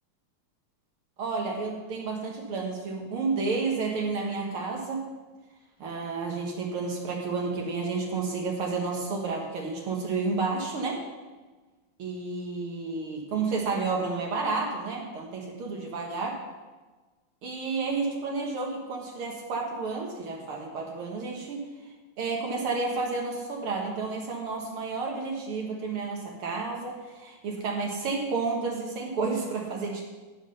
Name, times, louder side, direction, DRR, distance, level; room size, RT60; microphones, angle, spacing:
voice 1, 1.2-5.0 5.8-11.0 12.0-16.4 17.4-21.6 22.2-30.0, right 4 dB, 80° right, 0 dB, 2.3 m, -31 dB
16.0 x 5.8 x 5.5 m, 1.3 s
omnidirectional pair, 2.4 m